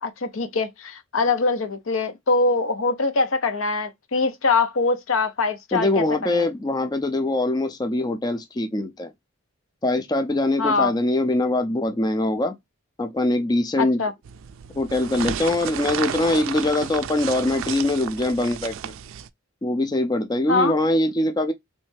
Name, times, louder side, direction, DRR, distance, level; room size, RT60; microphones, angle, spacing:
voice 1, 0.0-6.5 10.6-10.9 13.8-14.1 20.5-20.8, left 3 dB, 80° left, 0.7 m, -23 dB
voice 2, 5.7-9.1 9.8-12.6 13.0-14.0 14.7-18.9 19.6-21.5, left 2 dB, 20° left, 0.4 m, -23 dB
sound 1, 14.2-19.3, right 9 dB, 75° right, 0.3 m, -32 dB
3.1 x 3.1 x 3.2 m
head